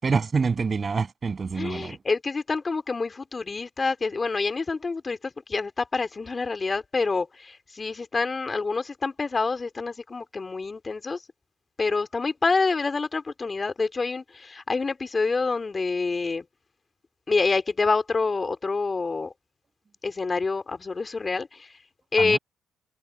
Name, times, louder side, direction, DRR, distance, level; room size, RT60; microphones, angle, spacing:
voice 1, 0.0-2.0 22.2-22.4, right 5 dB, 35° right, 7.2 m, -26 dB
voice 2, 1.6-11.2 11.8-16.4 17.3-19.3 20.0-21.7 22.1-22.4, left 4 dB, 30° left, 2.8 m, -27 dB
cardioid pair, 90°, 0 cm